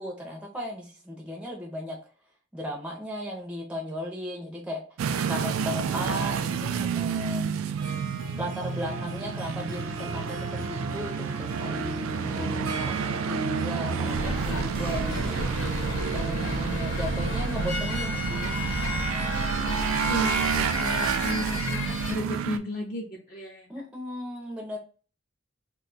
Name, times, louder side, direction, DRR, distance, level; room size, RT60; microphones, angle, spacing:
voice 1, 0.0-2.0 2.5-4.8 5.3-7.5 8.4-15.5 16.1-18.6 23.7-24.8, equal, 5° right, -1 dB, 0.5 m, -36 dB
sound 1, 5.0-22.6, right 6 dB, 90° right, 0.3 m, -30 dB
Harp, 7.8-21.3, right 1 dB, 70° right, 0.8 m, -39 dB
sound 2, 14.0-22.1, left 1 dB, 90° left, 0.9 m, -32 dB
voice 2, 20.1-23.7, equal, 45° left, -2 dB, 0.5 m, -34 dB
2.4 x 2.3 x 3.8 m, 0.38 s
head